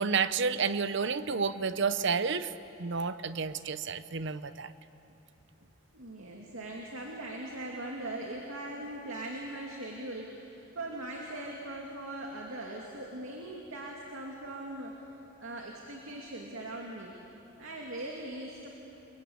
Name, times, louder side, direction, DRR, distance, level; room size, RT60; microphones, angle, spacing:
voice 1, 0.0-2.5 2.8-4.7, right 5 dB, 60° right, 13 dB, 0.8 m, -30 dB
voice 2, 5.9-15.0 15.4-17.1 17.6-18.7, right 1 dB, 85° right, 0 dB, 2.6 m, -40 dB
29.0 x 22.5 x 8.6 m, 3.0 s
head